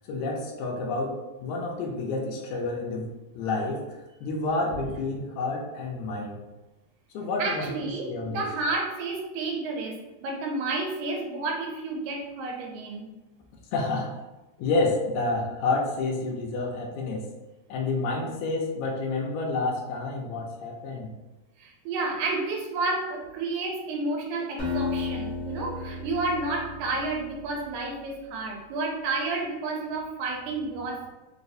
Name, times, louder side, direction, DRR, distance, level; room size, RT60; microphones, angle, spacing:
voice 1, 0.0-3.1 3.4-3.8 4.2-6.4 7.1-7.7 8.1-8.4 13.7-14.1 14.6-17.3 17.7-21.1, left 3 dB, 80° left, 0 dB, 1.8 m, -29 dB
voice 2, 7.4-13.1 21.6-31.1, right 3 dB, 85° right, 0 dB, 1.9 m, -31 dB
Acoustic guitar, 24.6-27.6, left 4 dB, 60° left, 0.8 m, -33 dB
4.6 x 2.0 x 2.6 m, 1.1 s
omnidirectional pair, 3.4 m